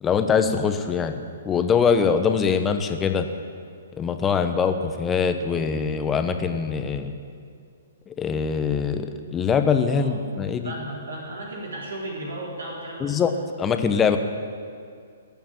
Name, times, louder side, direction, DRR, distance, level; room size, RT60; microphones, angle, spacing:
voice 1, 0.0-1.2 1.4-3.3 4.0-7.1 8.1-10.7 13.0-13.3 13.6-14.2, left 6 dB, 15° left, 7 dB, 1.2 m, -23 dB
voice 2, 10.6-13.2, right 1 dB, 80° right, -3 dB, 3.9 m, -34 dB
20.0 x 7.2 x 9.1 m, 2.3 s
hypercardioid pair, 130°, 0 cm